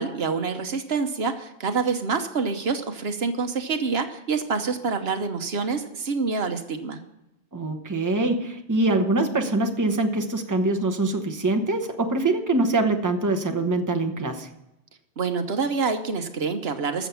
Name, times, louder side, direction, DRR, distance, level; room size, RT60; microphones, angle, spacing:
voice 1, 0.0-7.0 15.2-17.1, right 4 dB, 70° right, 7 dB, 1.2 m, -27 dB
voice 2, 7.5-14.5, right 2 dB, 20° right, 4 dB, 1.1 m, -24 dB
14.0 x 7.1 x 7.0 m, 0.90 s
omnidirectional pair, 1.1 m